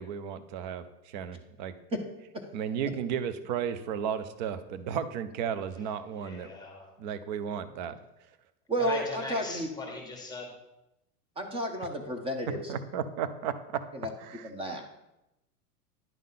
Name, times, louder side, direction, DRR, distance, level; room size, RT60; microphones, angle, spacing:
voice 1, 0.0-1.7 2.5-6.5 7.0-8.0 12.7-13.5 14.2-14.5, right 8 dB, 30° right, 13 dB, 0.4 m, -34 dB
voice 2, 6.1-6.9 8.8-10.5, left 3 dB, 10° left, 1 dB, 1.3 m, -40 dB
voice 3, 8.7-9.7 11.4-12.7 13.9-14.1 14.4-14.9, right 1 dB, 10° right, 5 dB, 0.8 m, -32 dB
10.5 x 3.6 x 5.6 m, 0.91 s
supercardioid pair, 140°, 47 cm